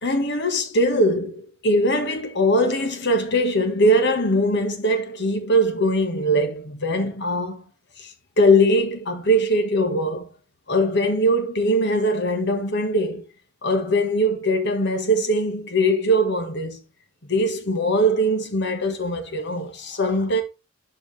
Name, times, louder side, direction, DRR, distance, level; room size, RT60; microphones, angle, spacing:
voice 1, 0.0-7.6 8.0-10.3 10.7-13.3 13.6-16.8 17.3-20.4, equal, 55° left, 1.7 m, -21 dB
12.0 x 4.9 x 3.4 m
head